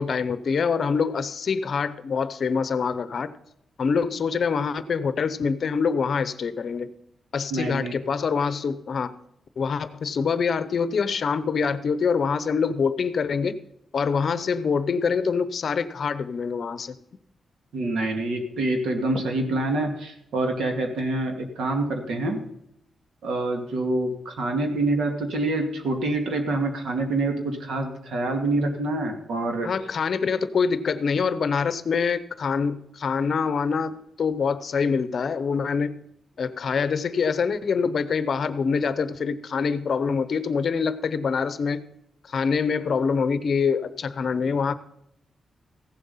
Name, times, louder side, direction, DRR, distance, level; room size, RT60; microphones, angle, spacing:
voice 1, 0.0-3.3 3.8-6.9 7.3-9.1 9.6-13.6 13.9-17.0 29.6-36.0 36.4-41.8 42.2-44.7, left 5 dB, 50° left, 13 dB, 0.7 m, -25 dB
voice 2, 7.5-7.9 17.7-22.4 23.2-29.7, right 2 dB, 85° right, 4 dB, 2.4 m, -26 dB
15.5 x 7.6 x 5.6 m, 0.78 s
wide cardioid pair, 155°, 0 cm